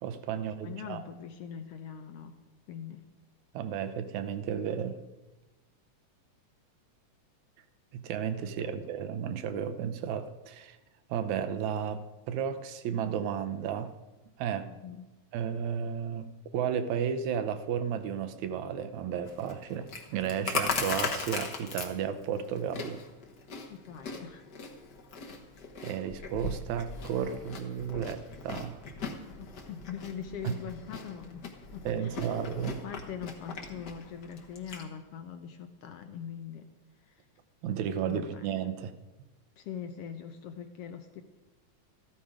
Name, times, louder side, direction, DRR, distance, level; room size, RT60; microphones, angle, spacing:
voice 1, 0.0-1.0 3.5-5.0 7.9-10.8 11.1-13.9 14.4-14.7 15.3-16.3 16.5-23.0 25.8-28.8 30.4-30.5 31.9-32.8 37.6-38.9, right 8 dB, 75° right, 11 dB, 2.1 m, -33 dB
voice 2, 0.6-2.4 2.7-3.1 8.6-8.9 14.6-15.1 23.7-24.5 29.3-32.5 32.8-36.7 37.1-37.2 38.0-38.6 39.6-41.2, left 7 dB, 75° left, 7 dB, 1.4 m, -42 dB
Chewing mastication, 19.2-34.8, left 4 dB, 50° left, 1.4 m, -39 dB
14.0 x 13.0 x 4.9 m, 1.1 s
omnidirectional pair, 3.5 m